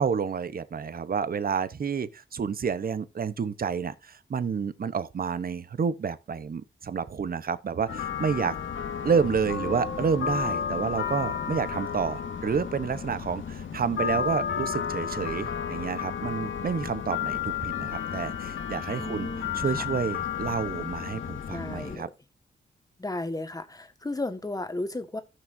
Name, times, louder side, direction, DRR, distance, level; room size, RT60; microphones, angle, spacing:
voice 1, 0.0-8.5 9.0-19.3 19.5-22.1, right 6 dB, 50° right, 0.8 m, -29 dB
sound 1, 7.9-22.0, left 7 dB, 80° left, 1.4 m, -32 dB
voice 2, 19.0-19.8 21.5-22.1 23.0-25.2, left 2 dB, 20° left, 1.5 m, -34 dB
16.5 x 6.1 x 2.6 m
cardioid pair, 90°, 20 cm